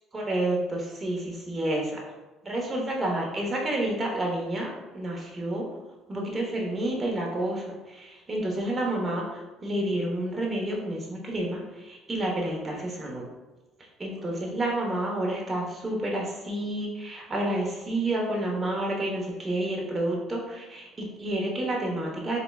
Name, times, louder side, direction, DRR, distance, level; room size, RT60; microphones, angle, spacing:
voice 1, 0.1-2.0 2.4-5.7 6.1-13.2 14.0-22.4, right 1 dB, 25° right, -2 dB, 1.0 m, -29 dB
3.7 x 3.4 x 2.3 m, 1.1 s
supercardioid pair, 90°, 0 cm